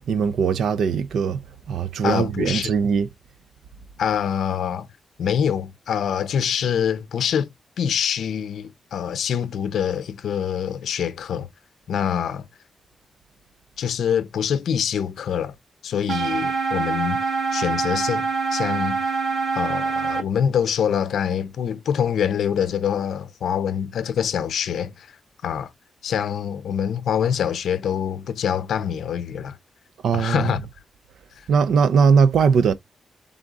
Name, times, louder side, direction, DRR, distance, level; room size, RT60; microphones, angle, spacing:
voice 1, 0.1-1.4 1.7-3.1 30.0-30.5 31.5-32.7, right 6 dB, 85° right, 0.5 m, -20 dB
voice 2, 2.0-2.7 4.0-4.9 5.2-7.5 7.8-11.5 11.9-12.5 13.8-15.5 15.8-17.2 17.5-19.1 19.5-25.1 25.4-25.7 26.0-29.6 30.1-30.6 31.4-31.5, left 8 dB, 80° left, 0.5 m, -25 dB
sound 1, 16.1-20.2, right 4 dB, 65° right, 1.0 m, -25 dB
3.6 x 3.6 x 3.8 m
wide cardioid pair, 180°, 0 cm